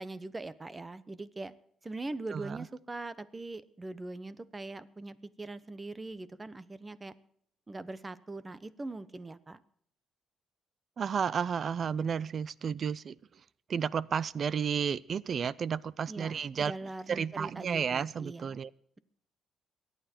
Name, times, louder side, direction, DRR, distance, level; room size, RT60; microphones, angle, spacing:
voice 1, 0.0-1.5 1.8-7.1 7.7-9.6 16.1-18.6, right 2 dB, 20° right, 1.0 m, -42 dB
voice 2, 11.0-13.2 13.7-16.7 17.1-18.7, right 7 dB, 50° right, 0.5 m, -32 dB
23.0 x 9.2 x 4.5 m
cardioid pair, 90°, 0 cm